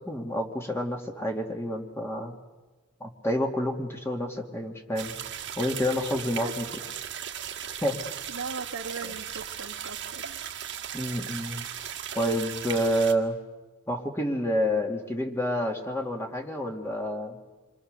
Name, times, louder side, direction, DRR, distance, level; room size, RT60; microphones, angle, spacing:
voice 1, 0.0-2.3 3.0-5.2 5.6-6.7 7.8-8.0 10.9-11.6 12.1-13.4 13.9-17.4, equal, 10° left, 2 dB, 2.4 m, -29 dB
sound 1, 5.0-13.1, right 9 dB, 55° right, 1.8 m, -37 dB
voice 2, 8.3-10.4, right 4 dB, 85° right, 4 dB, 2.0 m, -38 dB
28.0 x 24.5 x 6.8 m, 1.3 s
head